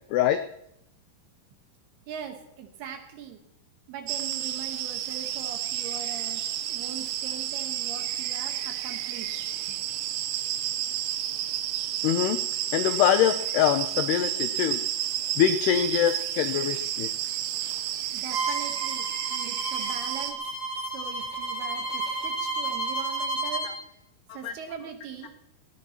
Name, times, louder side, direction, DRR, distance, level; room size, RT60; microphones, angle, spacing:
voice 1, 2.1-3.4 3.9-6.4 6.7-9.4 9.7-9.8 18.1-20.4 20.9-23.7 24.3-25.3, right 7 dB, 65° right, 4 dB, 2.9 m, -41 dB
sound 1, 4.1-20.3, right 12 dB, 85° right, 3.4 m, -31 dB
voice 2, 12.0-12.4 12.7-14.8 15.4-17.1 24.4-24.5, left 10 dB, 90° left, 9 dB, 2.3 m, -24 dB
Bowed string instrument, 18.3-23.7, right 3 dB, 5° right, 3.2 m, -31 dB
19.5 x 17.5 x 3.0 m, 0.79 s
omnidirectional pair, 5.5 m